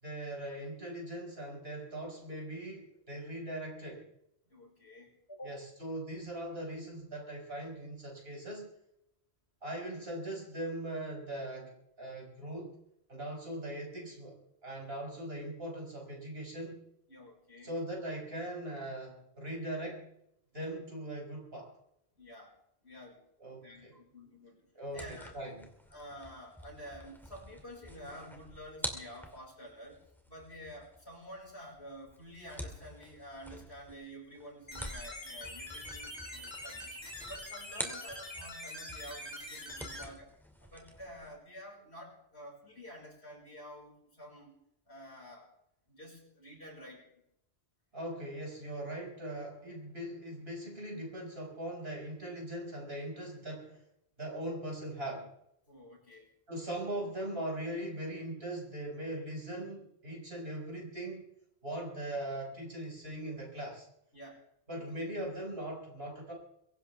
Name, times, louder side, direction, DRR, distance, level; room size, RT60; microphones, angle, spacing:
voice 1, 0.0-4.0 5.4-8.7 9.6-12.8 13.1-16.8 17.6-20.1 20.5-21.7 23.4-23.9 24.7-25.7 47.9-53.8 54.2-55.3 56.5-61.3 61.6-63.8 64.7-66.3, right 1 dB, 65° right, -1 dB, 6.3 m, -40 dB
voice 2, 4.4-5.6 17.1-17.7 22.2-22.6 22.8-23.2 23.6-24.7 24.9-25.3 25.9-30.0 30.3-37.0 37.3-40.3 40.6-44.6 44.9-45.5 45.9-47.1 55.7-56.3 64.1-64.4 64.7-64.8, equal, 75° left, -1 dB, 5.8 m, -49 dB
sound 1, 24.9-38.6 38.9-41.3, equal, ahead, 2.5 m, -47 dB
sound 2, 34.7-40.0, left 1 dB, 25° left, 3.1 m, -44 dB
23.0 x 17.0 x 3.5 m, 0.77 s
omnidirectional pair, 1.1 m